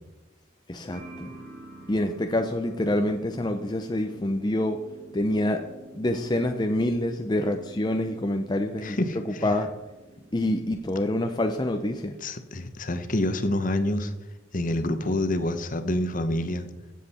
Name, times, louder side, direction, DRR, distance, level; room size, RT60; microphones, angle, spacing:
voice 1, 0.7-1.3 1.9-4.8 5.1-5.6 5.9-9.0 9.2-9.7 10.3-12.2, left 1 dB, 20° left, 5 dB, 0.6 m, -26 dB
sound 1, 0.9-10.4, right 1 dB, 50° right, 2.1 m, -48 dB
voice 2, 8.8-9.5 12.2-14.1 14.5-16.7, left 1 dB, 40° left, 10 dB, 1.0 m, -27 dB
16.0 x 7.5 x 4.3 m, 1.1 s
head